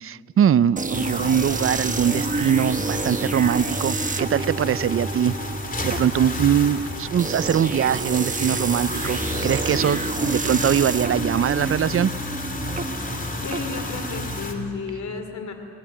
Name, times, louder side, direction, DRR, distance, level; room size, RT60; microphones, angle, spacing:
voice 1, 0.0-5.3 5.8-12.1, right 9 dB, 45° right, 19 dB, 0.5 m, -22 dB
sound 1, 0.8-14.5, right 3 dB, 25° right, 1.1 m, -30 dB
sound 2, 0.9-14.6, left 2 dB, 25° left, 2.7 m, -31 dB
voice 2, 13.4-15.5, left 4 dB, 65° left, 6 dB, 2.7 m, -32 dB
22.5 x 17.5 x 9.8 m, 2.4 s
cardioid pair, 90°, 31 cm